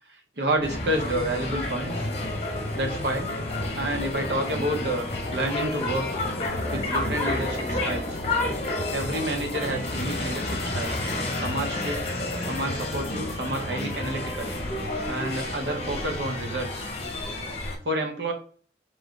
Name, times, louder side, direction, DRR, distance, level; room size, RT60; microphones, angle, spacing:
voice 1, 0.1-2.1 2.8-3.3 3.7-6.2 6.7-8.2 8.9-11.0 11.4-12.0 12.4-14.5 15.1-16.9 17.8-18.3, right 1 dB, 70° right, 3 dB, 1.0 m, -29 dB
sound 1, 0.6-17.8, left 2 dB, 35° left, 1.0 m, -30 dB
sound 2, 1.4-13.9, left 2 dB, 55° left, 0.6 m, -41 dB
3.7 x 3.1 x 3.7 m, 0.43 s
head